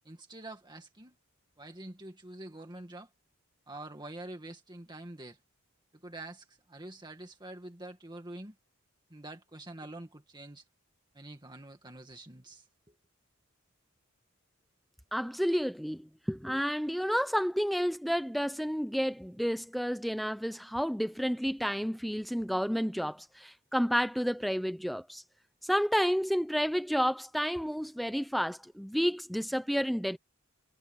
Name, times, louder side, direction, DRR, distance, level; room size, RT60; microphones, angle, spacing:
voice 1, 0.0-1.2 1.6-3.1 3.7-5.4 5.9-8.6 9.1-10.7 11.1-13.0, right 1 dB, 20° right, 1.9 m, -46 dB
voice 2, 15.1-25.2 25.6-30.2, equal, ahead, 0.6 m, -30 dB
head